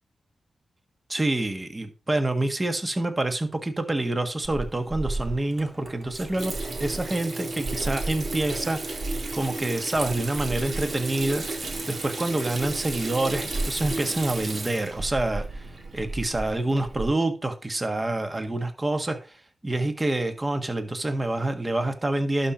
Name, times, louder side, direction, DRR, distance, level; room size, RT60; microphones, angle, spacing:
voice 1, 1.1-11.5 11.9-15.7 15.9-19.3 19.6-22.5, right 2 dB, 30° right, 7 dB, 1.5 m, -27 dB
Water tap faucet / Sink (filling or washing), 4.4-17.1, right 2 dB, 55° right, 1.8 m, -33 dB
11.5 x 4.4 x 5.0 m, 0.34 s
cardioid pair, 55°, 0 cm